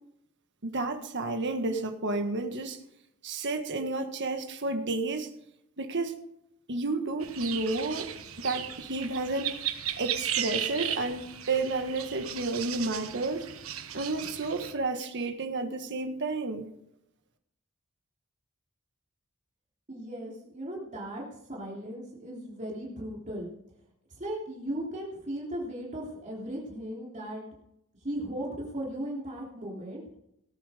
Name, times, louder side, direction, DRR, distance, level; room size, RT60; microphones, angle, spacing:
voice 1, 0.6-2.8 3.2-5.3 5.8-6.1 6.7-9.5 10.0-13.5 13.9-16.7, right 2 dB, 60° right, 5 dB, 1.7 m, -31 dB
sound 1, 7.2-14.7, right 10 dB, 75° right, 1.3 m, -36 dB
voice 2, 19.9-21.2 21.5-23.5 24.1-27.4 28.0-30.0, right 1 dB, 35° right, -4 dB, 3.2 m, -37 dB
18.0 x 8.9 x 5.1 m, 0.80 s
head